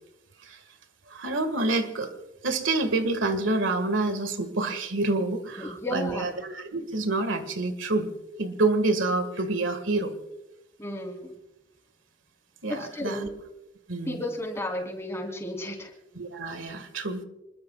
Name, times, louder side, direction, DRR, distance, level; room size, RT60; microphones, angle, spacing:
voice 1, 1.1-2.1 2.4-8.1 8.4-10.1 12.6-13.3 13.9-14.2 16.1-17.2, right 2 dB, 80° right, 9 dB, 1.8 m, -27 dB
voice 2, 5.6-6.3 10.8-11.3 12.7-13.3 14.1-15.9, left 1 dB, 15° left, 1 dB, 3.3 m, -33 dB
28.0 x 21.5 x 2.4 m, 0.94 s
head